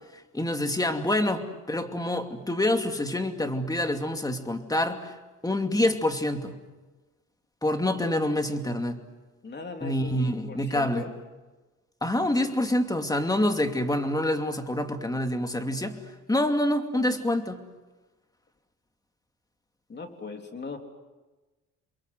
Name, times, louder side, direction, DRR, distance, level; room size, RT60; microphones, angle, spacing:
voice 1, 0.3-5.1 5.4-6.6 7.6-9.0 9.8-11.0 12.0-16.0 16.3-17.6, left 1 dB, 10° left, 6 dB, 2.6 m, -26 dB
voice 2, 9.4-11.1 19.9-20.8, left 4 dB, 35° left, 4 dB, 3.5 m, -39 dB
29.0 x 22.5 x 7.9 m, 1.2 s
cardioid pair, 90°, 30 cm